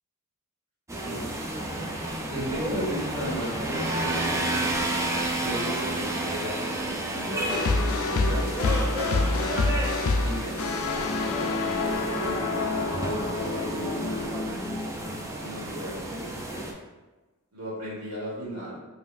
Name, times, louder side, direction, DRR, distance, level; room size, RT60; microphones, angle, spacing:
sound 1, 0.9-16.7, right 1 dB, 15° right, 0.4 m, -31 dB
voice 1, 1.5-1.9 2.3-4.6 5.4-9.7 10.2-11.5 12.2-14.4 14.8-16.6 17.5-18.8, equal, 90° right, -7 dB, 1.4 m, -36 dB
sound 2, 7.5-15.7, left 3 dB, 65° left, 0.4 m, -28 dB
5.3 x 2.6 x 2.4 m, 1.2 s
head